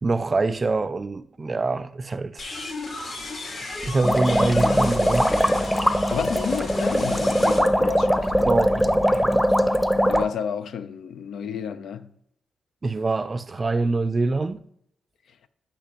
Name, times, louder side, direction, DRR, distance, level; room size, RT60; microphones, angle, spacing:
voice 1, 0.0-2.5 3.8-5.3 8.4-9.5 12.8-14.6, right 3 dB, 40° right, 0.5 m, -25 dB
sound 1, 2.4-7.6, left 2 dB, 55° left, 1.9 m, -34 dB
sound 2, 4.0-10.2, equal, ahead, 0.7 m, -21 dB
voice 2, 6.1-8.6 10.1-12.1, left 7 dB, 70° left, 0.4 m, -31 dB
8.8 x 5.1 x 2.9 m
supercardioid pair, 45°, 0 cm